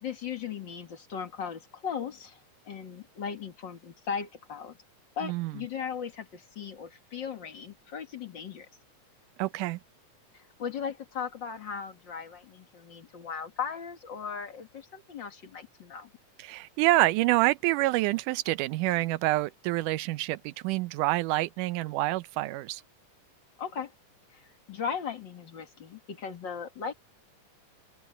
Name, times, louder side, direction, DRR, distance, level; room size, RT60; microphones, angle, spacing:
voice 1, 0.0-2.4 2.7-4.8 5.2-8.7 10.3-16.1 23.6-23.9 24.3-26.9, left 7 dB, 40° left, 2.0 m, -37 dB
voice 2, 9.4-9.8 16.4-22.8, right 18 dB, 90° right, 2.2 m, -27 dB
open air
omnidirectional pair, 3.6 m